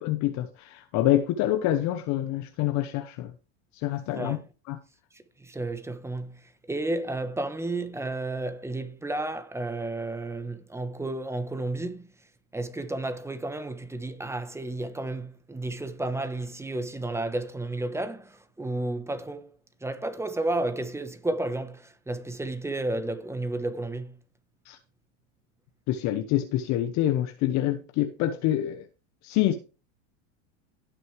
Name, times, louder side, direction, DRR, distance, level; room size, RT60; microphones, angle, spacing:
voice 1, 0.0-3.3 3.8-4.4 4.7-4.8 24.7-24.8 25.9-28.9 29.2-29.6, left 13 dB, 45° left, 1.0 m, -26 dB
voice 2, 4.1-4.4 5.1-12.1 12.5-19.5 19.8-24.2, right 2 dB, 5° right, 1.1 m, -32 dB
17.0 x 6.4 x 3.3 m
supercardioid pair, 120°, 38 cm